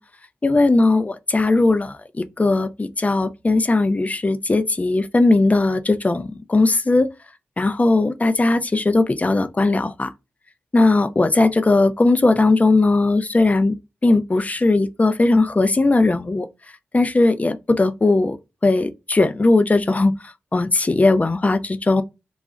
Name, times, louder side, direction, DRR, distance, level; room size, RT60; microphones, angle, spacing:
voice 1, 0.4-7.1 7.6-10.1 10.7-13.7 14.0-16.5 16.9-18.4 18.6-20.1 20.5-22.0, left 2 dB, 30° left, 0.4 m, -18 dB
2.3 x 2.0 x 3.6 m
cardioid pair, 40°, 5 cm